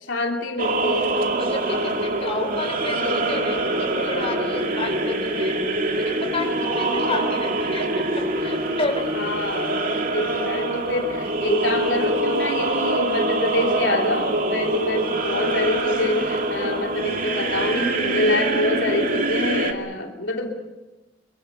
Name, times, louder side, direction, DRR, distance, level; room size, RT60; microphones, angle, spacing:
voice 1, 0.1-1.6 2.3-2.4 9.1-20.5, left 2 dB, 85° left, 1 dB, 3.1 m, -26 dB
sound 1, 0.6-19.7, right 2 dB, 50° right, 2.5 m, -24 dB
voice 2, 1.4-5.5 6.0-9.1, left 2 dB, 35° left, 3 dB, 4.3 m, -30 dB
26.0 x 23.0 x 6.8 m, 1.1 s
head